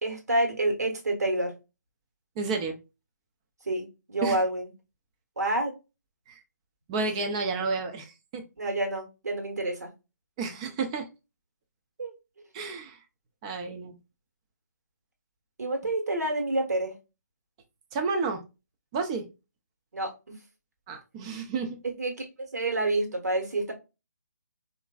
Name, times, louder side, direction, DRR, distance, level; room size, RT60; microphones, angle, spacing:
voice 1, 0.0-1.5 3.6-4.7 5.4-5.7 8.6-9.9 12.0-12.1 15.6-16.9 19.9-20.1 22.0-23.7, right 2 dB, 60° right, 1.3 m, -28 dB
voice 2, 2.4-2.8 4.2-4.4 6.3-6.4 6.9-8.4 10.4-11.1 12.5-13.0 13.4-13.9 17.9-18.4 18.9-19.2 20.9-21.8, right 4 dB, 20° right, 0.5 m, -31 dB
3.7 x 2.5 x 2.3 m
figure-of-eight pair, 145°, 10 cm